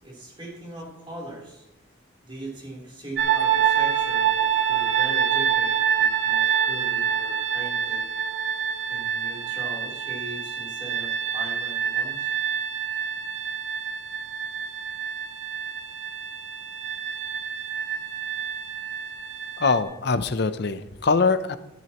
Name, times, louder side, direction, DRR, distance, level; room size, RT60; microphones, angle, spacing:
voice 1, 0.0-1.7 2.2-8.1 8.9-12.3, right 1 dB, 25° right, -4 dB, 3.5 m, -40 dB
sound 1, 3.2-19.8, right 8 dB, 65° right, 1.2 m, -26 dB
voice 2, 19.6-21.6, left 4 dB, 55° left, 12 dB, 0.6 m, -23 dB
13.0 x 12.5 x 3.0 m, 0.94 s
head